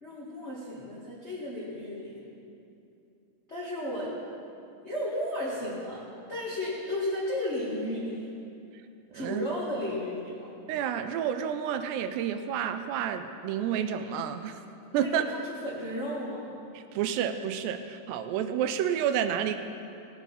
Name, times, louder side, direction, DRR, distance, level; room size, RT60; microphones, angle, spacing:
voice 1, 0.0-2.2 3.5-4.1 4.8-6.0 6.3-8.3 9.1-10.5 14.9-15.3 15.6-16.5, left 1 dB, 80° left, -7 dB, 0.6 m, -33 dB
voice 2, 9.1-9.5 10.7-14.6 14.9-15.2 16.7-19.6, right 9 dB, 85° right, 9 dB, 2.7 m, -30 dB
17.0 x 8.3 x 5.6 m, 2.7 s
omnidirectional pair, 4.9 m